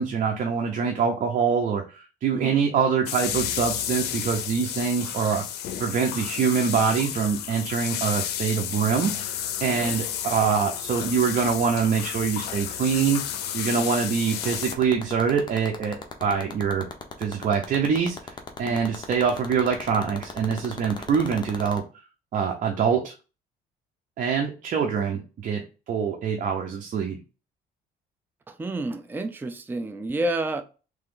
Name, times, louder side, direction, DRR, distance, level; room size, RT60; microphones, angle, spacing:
voice 1, 0.0-5.4 5.8-9.3 9.6-13.2 13.5-16.9 17.2-18.2 18.6-21.8 22.3-23.1 24.2-25.6 25.9-27.2, right 6 dB, 50° right, 0.8 m, -24 dB
voice 2, 2.3-2.6 9.7-10.0 18.6-18.9 28.5-30.6, right 2 dB, 10° right, 0.4 m, -30 dB
sound 1, 3.1-14.7, left 10 dB, 75° left, 0.6 m, -32 dB
sound 2, 14.3-21.8, left 5 dB, 25° left, 0.9 m, -35 dB
3.4 x 3.2 x 3.7 m
cardioid pair, 110°, 17 cm